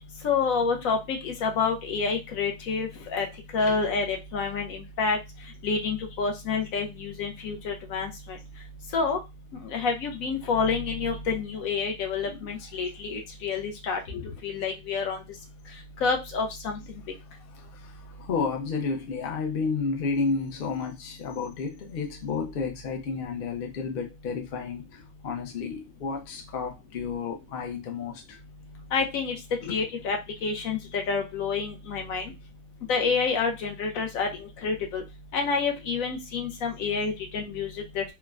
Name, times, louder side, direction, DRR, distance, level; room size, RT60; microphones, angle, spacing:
voice 1, 0.2-3.3 3.5-5.2 5.6-8.4 8.9-9.2 9.7-14.0 14.4-15.2 16.0-16.8 28.9-29.4 29.7-30.2 30.4-32.2 32.9-34.3 34.6-35.0 35.3-38.0, left 5 dB, 70° left, 1.0 m, -28 dB
voice 2, 14.1-14.4 16.7-16.9 17.5-17.7 18.2-24.8 25.2-28.4 29.6-29.8 30.8-31.0, left 5 dB, 55° left, 0.6 m, -31 dB
3.2 x 2.1 x 2.4 m
omnidirectional pair, 1.6 m